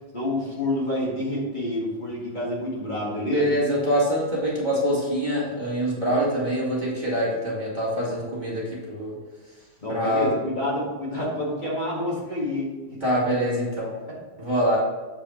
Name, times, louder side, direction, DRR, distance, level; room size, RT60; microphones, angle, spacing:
voice 1, 0.1-3.5 9.8-13.0 14.1-14.2, left 1 dB, 40° left, -5 dB, 2.1 m, -28 dB
voice 2, 3.3-9.2 9.9-10.3 13.0-13.9 14.4-14.8, equal, 40° right, -7 dB, 3.0 m, -25 dB
7.5 x 4.9 x 5.1 m, 1.2 s
omnidirectional pair, 1.2 m